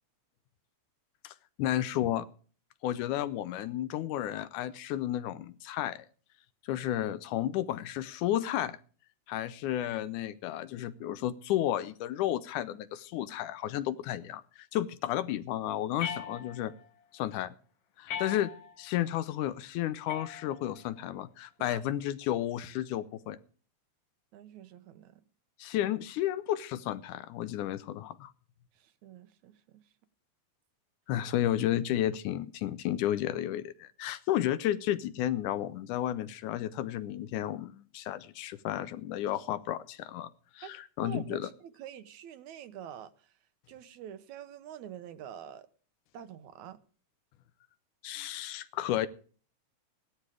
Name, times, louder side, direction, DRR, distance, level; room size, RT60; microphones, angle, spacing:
voice 1, 1.2-2.3 2.8-6.1 6.7-8.8 9.3-14.4 14.7-16.7 17.1-17.5 18.0-18.5 18.8-23.4 25.6-28.3 31.1-41.5 48.0-49.1, left 12 dB, 80° left, 2.2 m, -32 dB
sound 1, 16.0-16.9 18.1-18.9 20.1-20.9, left 7 dB, 60° left, 1.9 m, -40 dB
voice 2, 24.3-25.2 28.8-29.8 40.6-40.7 41.0-43.3 43.7-45.7 46.1-46.8, right 9 dB, 75° right, 2.2 m, -46 dB
16.5 x 11.5 x 4.8 m
omnidirectional pair, 3.6 m